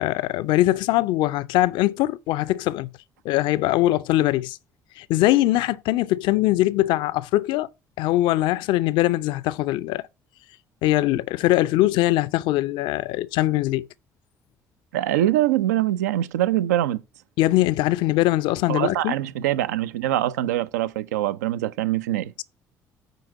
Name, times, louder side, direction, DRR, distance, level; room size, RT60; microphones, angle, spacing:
voice 1, 0.0-2.9 3.2-4.6 5.0-7.7 8.0-10.0 10.8-13.9 17.4-19.1, left 16 dB, 60° left, 0.4 m, -21 dB
voice 2, 14.9-17.0 18.7-22.3, right 13 dB, 75° right, 0.5 m, -23 dB
9.3 x 3.9 x 5.3 m
figure-of-eight pair, 50°, 9 cm